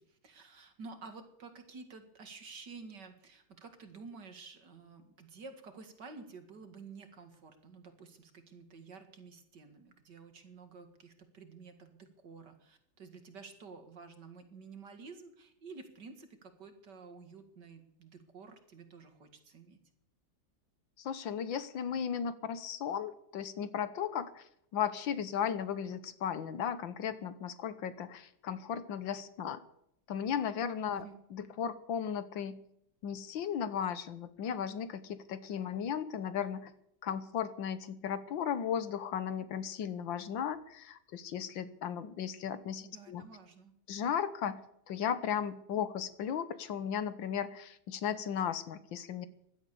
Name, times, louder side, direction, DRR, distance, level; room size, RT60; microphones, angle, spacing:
voice 1, 0.0-19.8 30.9-31.2 42.8-43.7, right 4 dB, 65° right, 7 dB, 2.6 m, -51 dB
voice 2, 21.0-24.5 24.7-29.6 30.1-31.1 31.3-32.6 33.0-36.7 37.0-43.2 43.9-49.3, left 8 dB, 80° left, 13 dB, 1.8 m, -36 dB
16.0 x 12.0 x 6.9 m, 0.76 s
omnidirectional pair, 2.1 m